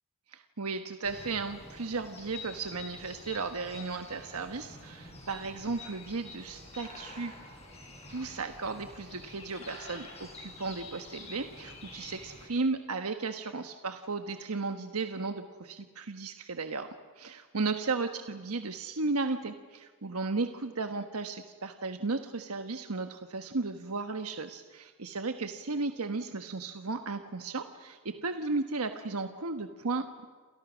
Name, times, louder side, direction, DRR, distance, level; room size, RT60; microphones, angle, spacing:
voice 1, 0.3-7.4 8.1-16.9 17.2-30.3, right 3 dB, 85° right, 7 dB, 1.3 m, -35 dB
sound 1, 1.0-12.5, left 2 dB, 30° left, 6.5 m, -48 dB
29.0 x 28.0 x 6.3 m, 1.4 s
head